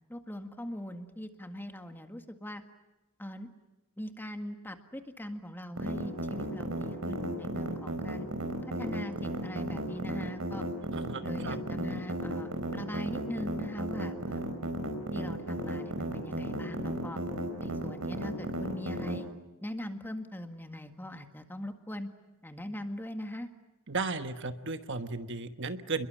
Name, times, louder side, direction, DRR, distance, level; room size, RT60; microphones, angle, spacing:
voice 1, 0.1-2.6 3.2-3.5 4.0-8.3 8.8-10.6 11.2-14.5 15.1-17.2 17.6-19.3 19.6-22.1 22.4-23.5, left 1 dB, 10° left, 6 dB, 1.8 m, -41 dB
sound 1, 5.8-19.2, right 1 dB, 85° right, 4.8 m, -34 dB
voice 2, 10.9-11.6 23.9-26.1, right 3 dB, 60° right, 9 dB, 1.4 m, -35 dB
29.0 x 22.0 x 8.9 m, 1.0 s
head